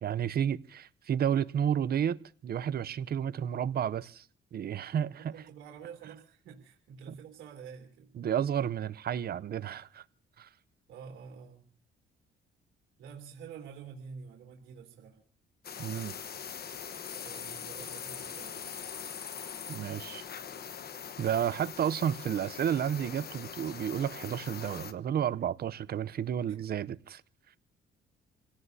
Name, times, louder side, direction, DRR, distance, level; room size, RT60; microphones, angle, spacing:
voice 1, 0.0-4.2 4.5-5.3 7.1-7.2 8.2-10.0 10.4-10.5 15.8-16.2 19.7-20.2 21.2-27.2, right 9 dB, 50° right, 17 dB, 0.7 m, -31 dB
voice 2, 5.1-8.1 10.9-11.7 13.0-15.2 17.2-18.7 26.5-26.6, right 6 dB, 85° right, 0 dB, 3.0 m, -48 dB
sound 1, 15.6-24.9, left 7 dB, 50° left, 1.1 m, -42 dB
28.0 x 17.5 x 2.7 m, 0.43 s
cardioid pair, 90°, 20 cm